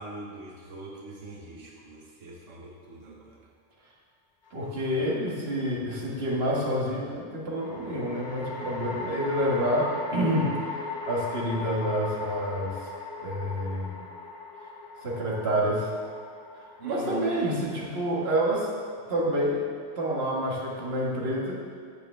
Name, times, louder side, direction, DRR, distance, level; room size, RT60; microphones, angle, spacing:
voice 1, 0.0-3.4 4.9-5.0 14.1-14.2 16.8-17.3, right 3 dB, 90° right, -2 dB, 1.5 m, -42 dB
sound 1, 4.5-5.2 7.6-18.9, left 3 dB, 45° left, 1.0 m, -39 dB
voice 2, 4.5-10.5 11.0-12.9 13.2-14.0 15.0-15.9 16.8-18.7 19.1-19.6 20.0-21.6, equal, 55° right, -4 dB, 1.8 m, -28 dB
15.5 x 6.9 x 3.3 m, 2.1 s
omnidirectional pair, 1.3 m